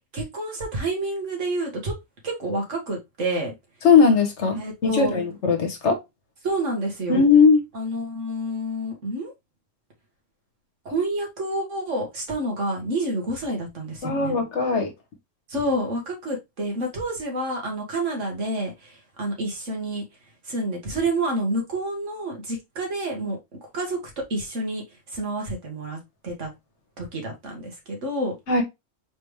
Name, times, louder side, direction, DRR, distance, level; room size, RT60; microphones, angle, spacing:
voice 1, 0.1-2.0 2.2-3.5 4.6-5.1 6.4-7.2 7.7-9.3 10.9-14.4 15.5-20.0 20.4-23.4 23.7-26.5 27.0-28.4, right 1 dB, 70° right, 1.9 m, -29 dB
voice 2, 3.8-6.0 7.1-7.6 14.0-14.9 28.5-28.6, left 5 dB, 65° left, 1.3 m, -19 dB
4.2 x 3.4 x 3.1 m
omnidirectional pair, 1.3 m